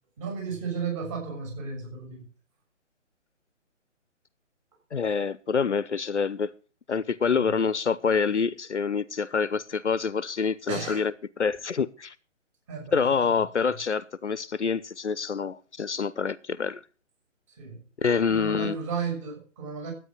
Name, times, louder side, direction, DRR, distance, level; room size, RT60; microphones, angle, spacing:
voice 1, 0.2-2.3 7.3-7.5 10.7-11.1 12.7-13.8 17.5-17.9 18.3-19.9, right 5 dB, 25° right, 6.6 m, -34 dB
voice 2, 4.9-6.5 6.9-11.1 11.4-12.1 12.9-16.8 18.0-18.8, left 5 dB, 65° left, 1.0 m, -26 dB
12.5 x 9.3 x 6.3 m
figure-of-eight pair, 145°, 37 cm